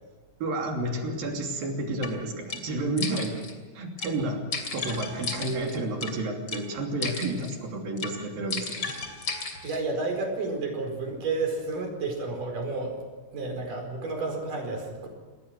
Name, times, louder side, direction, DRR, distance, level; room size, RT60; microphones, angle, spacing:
voice 1, 0.4-3.4 3.7-4.4 4.7-8.8, right 2 dB, 85° right, 2 dB, 4.7 m, -30 dB
sound 1, 2.0-2.1 2.5-2.6 3.0-3.5 4.0-4.1 4.5-6.1 6.5-6.6 7.0-7.5 8.0-8.1 8.5-9.8, left 4 dB, 35° left, 3.2 m, -34 dB
voice 2, 9.6-13.0 13.3-15.1, right 3 dB, 65° right, 2 dB, 6.3 m, -31 dB
28.0 x 19.5 x 6.4 m, 1.3 s
omnidirectional pair, 4.0 m